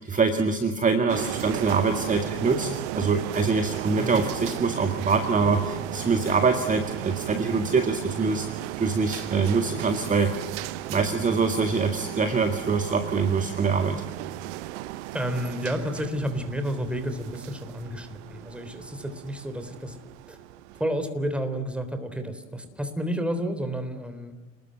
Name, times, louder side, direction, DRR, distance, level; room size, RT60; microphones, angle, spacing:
voice 1, 0.0-10.5 10.9-14.0, right 4 dB, 20° right, 7 dB, 2.0 m, -24 dB
sound 1, 1.1-20.8, right 16 dB, 55° right, 1.0 m, -35 dB
voice 2, 15.1-20.0 20.3-20.4 20.8-24.3, equal, 5° right, 8 dB, 3.7 m, -31 dB
29.0 x 20.0 x 7.8 m, 1.1 s
figure-of-eight pair, 70°, 42 cm